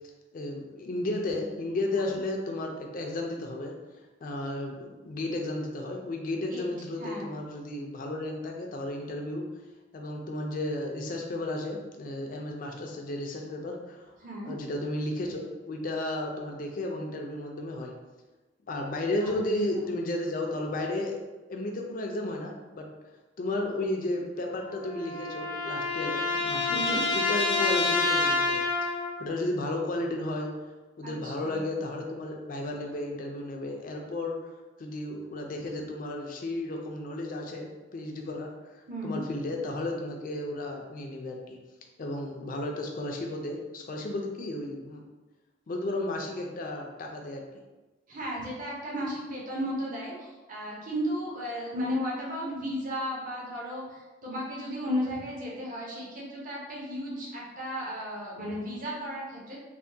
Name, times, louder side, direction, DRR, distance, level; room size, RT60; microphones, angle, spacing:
voice 1, 0.3-3.7 4.2-9.5 9.9-14.1 14.5-17.9 18.7-21.2 21.5-22.9 23.4-28.9 29.2-30.5 31.0-34.4 34.8-38.5 39.0-41.6 42.0-45.0 45.7-47.4, left 1 dB, 45° left, 1 dB, 0.4 m, -33 dB
voice 2, 14.2-14.5 19.2-19.3 26.7-27.0 31.0-31.6 38.9-39.2 48.1-59.6, equal, 45° right, -5 dB, 0.7 m, -34 dB
sound 1, 24.5-29.2, left 3 dB, 80° left, 0.8 m, -28 dB
3.3 x 2.1 x 2.6 m, 1.2 s
head